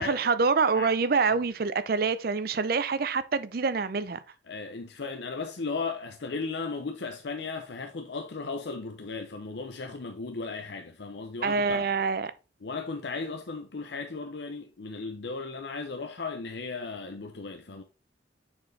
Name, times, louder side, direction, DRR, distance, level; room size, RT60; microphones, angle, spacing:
voice 1, 0.0-4.2 11.4-12.3, right 4 dB, 55° right, 0.5 m, -26 dB
voice 2, 4.5-11.9 12.6-17.8, left 4 dB, 70° left, 0.7 m, -36 dB
6.6 x 4.4 x 3.3 m
head